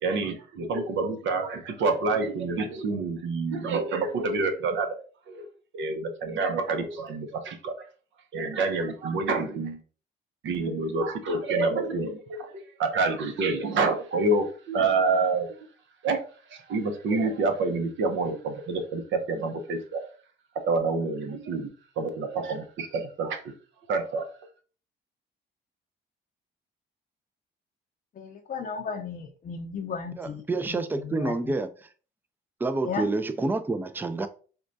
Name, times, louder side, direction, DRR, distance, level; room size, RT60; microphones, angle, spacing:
voice 1, 0.0-4.9 5.3-5.5 5.7-7.9 8.3-9.8 10.4-15.6 16.0-16.2 16.5-20.0 20.6-21.7 22.0-23.5 23.9-24.3, right 3 dB, 70° right, 0.7 m, -27 dB
voice 2, 28.2-30.8 31.0-31.5 32.8-33.1, left 5 dB, 45° left, 0.5 m, -35 dB
voice 3, 30.2-31.7 32.6-34.3, right 3 dB, 10° right, 0.3 m, -28 dB
4.3 x 2.2 x 2.6 m
cardioid pair, 90°, 20 cm